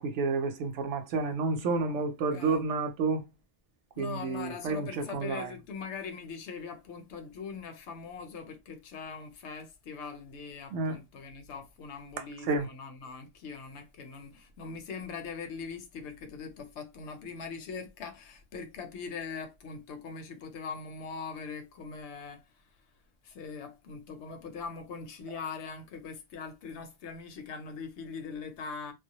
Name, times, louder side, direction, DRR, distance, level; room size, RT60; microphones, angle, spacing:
voice 1, 0.0-3.2 4.0-5.5 10.7-11.0 12.2-12.7 25.3-25.4, right 4 dB, 85° right, 0.9 m, -30 dB
voice 2, 2.3-2.6 4.0-22.4 23.2-28.9, left 5 dB, 75° left, 0.9 m, -41 dB
2.1 x 2.1 x 2.8 m
omnidirectional pair, 1.2 m